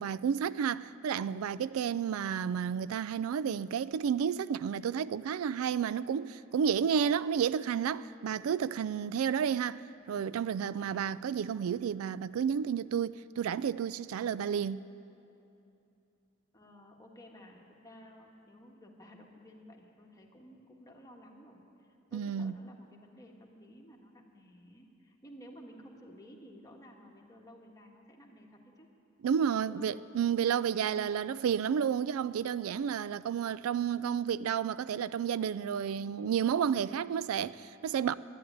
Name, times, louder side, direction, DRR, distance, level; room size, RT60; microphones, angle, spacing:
voice 1, 0.0-9.8 10.1-14.8 22.1-22.6 29.2-38.1, right 7 dB, 90° right, 0.3 m, -31 dB
voice 2, 9.0-9.5 10.6-11.0 14.2-14.4 16.5-28.9 29.6-29.9 30.6-30.8, equal, 15° left, 1.4 m, -54 dB
12.5 x 10.0 x 10.0 m
head